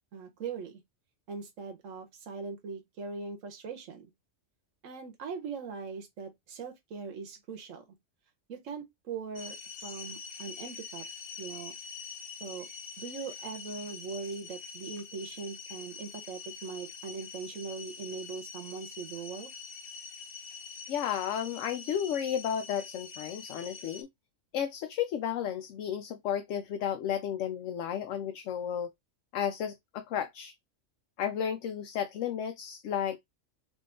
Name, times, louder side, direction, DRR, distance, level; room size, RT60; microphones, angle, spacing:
voice 1, 0.1-0.8 1.3-4.1 4.8-7.8 8.5-9.6 9.8-11.1 11.4-11.7 12.4-12.7 13.0-19.5, right 5 dB, 85° right, 1.2 m, -40 dB
sound 1, 9.4-24.0, left 5 dB, 50° left, 0.9 m, -45 dB
voice 2, 20.9-24.1 24.5-28.9 29.3-30.5 31.2-33.2, left 9 dB, 75° left, 0.9 m, -33 dB
3.8 x 2.6 x 3.7 m
omnidirectional pair, 1.3 m